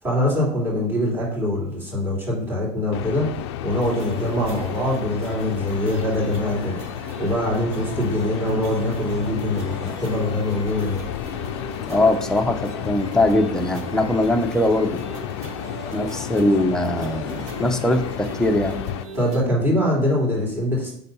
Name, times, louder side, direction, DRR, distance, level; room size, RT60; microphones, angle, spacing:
voice 1, 0.0-6.8 7.2-11.0 19.1-20.9, left 1 dB, 15° right, -4 dB, 2.8 m, -23 dB
sound 1, 2.9-19.0, left 12 dB, 85° left, 0.4 m, -32 dB
sound 2, 3.7-19.4, right 3 dB, 50° right, 1.2 m, -39 dB
voice 2, 11.8-15.0 15.9-18.8, left 1 dB, 5° left, 3 dB, 0.8 m, -21 dB
5.5 x 4.1 x 5.4 m, 0.66 s
supercardioid pair, 115°, 14 cm